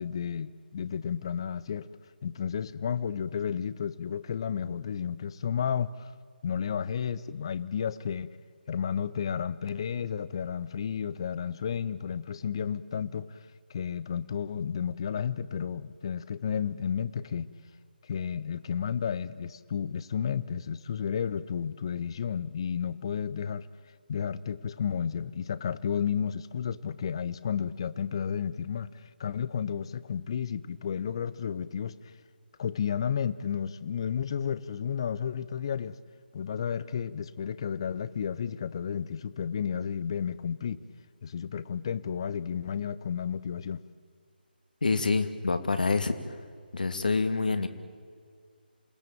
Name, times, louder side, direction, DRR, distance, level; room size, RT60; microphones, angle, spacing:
voice 1, 0.0-1.9 2.2-6.1 6.4-8.3 8.7-13.4 13.7-17.5 18.0-23.7 24.1-32.0 32.6-36.0 36.3-40.8 41.2-43.8, left 7 dB, 30° left, 0.8 m, -32 dB
voice 2, 44.8-46.1 46.7-47.7, left 4 dB, 55° left, 2.2 m, -26 dB
28.0 x 19.5 x 8.8 m
figure-of-eight pair, 150°, 5 cm